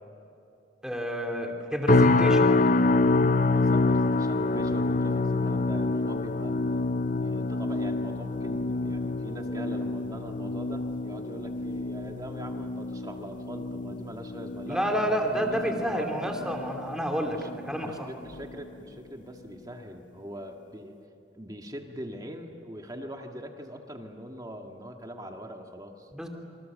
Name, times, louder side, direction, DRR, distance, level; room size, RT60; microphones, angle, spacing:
voice 1, 0.8-2.6 14.7-18.1 26.1-26.3, equal, 5° right, 2 dB, 2.8 m, -29 dB
sound 1, 1.9-17.1 17.4-17.8 18.3-18.5, left 3 dB, 40° left, 0.6 m, -26 dB
voice 2, 3.5-6.6 7.1-16.1 17.3-17.5 17.8-20.9 21.3-26.1, equal, 20° right, 3 dB, 1.9 m, -42 dB
27.0 x 25.5 x 7.7 m, 2.7 s
head